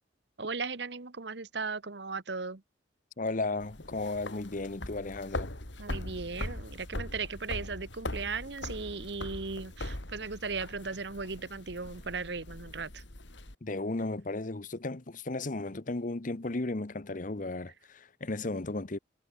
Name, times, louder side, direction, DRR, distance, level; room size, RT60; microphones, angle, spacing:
voice 1, 0.4-2.6 5.8-13.0, right 4 dB, 65° right, 1.3 m, -37 dB
voice 2, 3.2-5.5 13.6-19.0, left 2 dB, 45° left, 1.0 m, -35 dB
sound 1, 3.6-13.5, left 1 dB, 80° left, 3.9 m, -41 dB
head